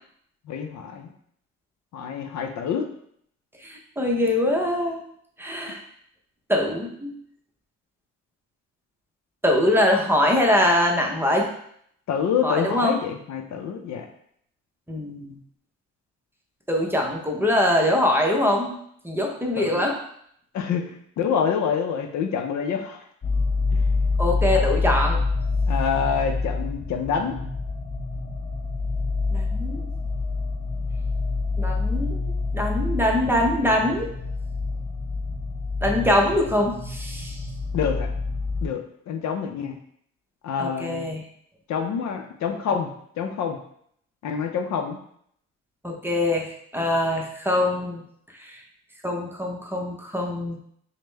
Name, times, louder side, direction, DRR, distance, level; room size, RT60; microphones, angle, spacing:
voice 1, 0.5-1.1 1.9-2.9 12.1-14.1 19.6-19.8 20.5-20.8 21.2-23.0 23.7-23.8 24.5-24.6 25.7-27.4 37.7-38.1 38.6-39.8 40.4-41.1 41.7-42.9 43.2-43.6 44.2-45.0, left 7 dB, 65° left, 5 dB, 0.6 m, -27 dB
voice 2, 3.6-5.0 5.4-5.8 6.5-7.2 9.4-11.5 12.4-13.0 14.9-15.4 16.7-18.7 19.0-20.0 24.2-25.2 29.3-29.9 31.6-34.1 35.8-37.4 40.6-41.2 45.8-46.5 46.7-48.0 48.5-48.6 49.0-50.6, left 1 dB, 5° right, 0 dB, 0.7 m, -23 dB
sound 1, 23.2-38.7, left 3 dB, 30° left, 0.7 m, -27 dB
5.1 x 2.1 x 3.3 m, 0.68 s
cardioid pair, 90°, 30 cm